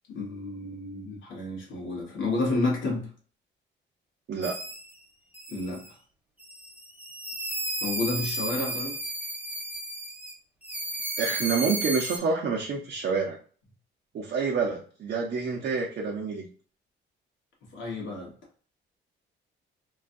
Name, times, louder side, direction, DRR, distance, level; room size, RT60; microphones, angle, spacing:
voice 1, 0.1-3.1 5.5-6.0 7.8-9.0 17.7-18.3, left 2 dB, 75° left, 1.3 m, -30 dB
sound 1, 4.4-4.9 5.3-5.9 6.4-10.3 10.6-12.2, right 1 dB, 10° right, 0.7 m, -34 dB
voice 2, 11.2-13.4 14.1-16.5, right 5 dB, 55° right, 0.7 m, -28 dB
3.0 x 2.3 x 2.6 m
cardioid pair, 90°, 20 cm